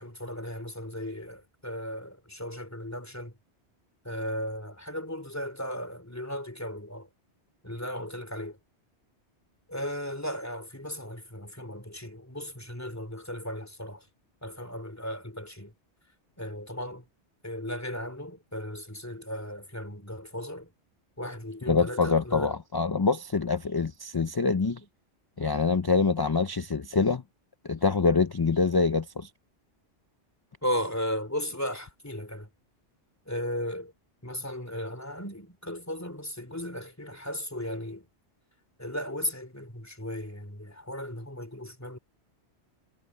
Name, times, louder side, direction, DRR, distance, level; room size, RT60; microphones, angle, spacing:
voice 1, 0.0-3.4 4.0-7.1 7.6-8.6 9.7-14.1 14.4-15.7 16.4-17.0 17.4-20.7 21.2-22.6 24.8-24.9 30.6-32.5 33.3-33.9 34.2-38.1 38.8-42.0, equal, 15° left, 3.1 m, -36 dB
voice 2, 21.7-24.8 25.4-27.2 27.6-29.3, left 4 dB, 30° left, 0.4 m, -25 dB
omnidirectional pair, 1.1 m